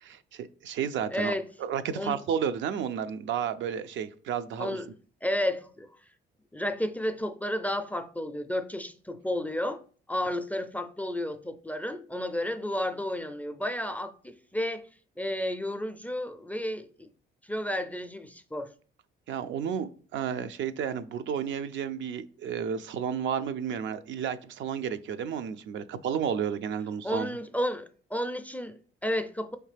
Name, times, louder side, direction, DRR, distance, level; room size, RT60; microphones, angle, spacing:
voice 1, 0.0-1.3 1.6-4.8 19.3-27.3, right 8 dB, 70° right, 0.4 m, -32 dB
voice 2, 1.1-1.4 1.9-2.2 4.6-4.9 5.2-5.9 6.5-9.8 10.1-14.9 15.2-17.1 17.4-18.7 27.0-29.6, left 1 dB, 10° left, 0.3 m, -32 dB
4.7 x 3.2 x 3.2 m
cardioid pair, 90°, 20 cm